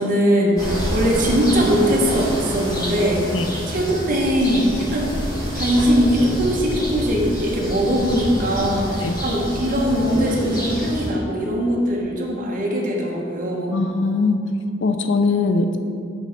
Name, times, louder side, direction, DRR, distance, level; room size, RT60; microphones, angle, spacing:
voice 1, 0.0-3.3 3.7-5.1 5.5-13.8, equal, 45° right, -2 dB, 1.1 m, -21 dB
sound 1, 0.6-11.1, equal, 20° left, 1.6 m, -27 dB
voice 2, 13.7-14.4 14.8-15.8, left 3 dB, 70° left, 7 dB, 0.5 m, -20 dB
8.5 x 3.3 x 5.2 m, 2.5 s
head